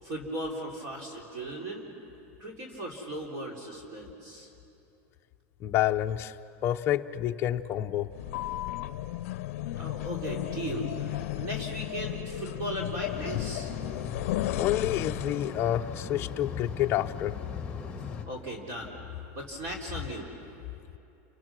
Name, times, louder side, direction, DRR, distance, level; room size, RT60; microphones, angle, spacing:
voice 1, 0.0-1.9 2.4-4.5 9.7-13.7 18.3-19.0 19.3-20.3, right 1 dB, 40° right, -1 dB, 3.6 m, -37 dB
voice 2, 5.6-6.3 6.6-8.1 14.5-17.3, left 12 dB, 30° left, 5 dB, 0.6 m, -28 dB
sound 1, 8.1-15.6, left 15 dB, 80° left, 0.6 m, -34 dB
sound 2, 13.1-18.2, left 5 dB, 15° left, 2.1 m, -39 dB
29.5 x 25.5 x 6.1 m, 2.8 s
supercardioid pair, 160°, 8 cm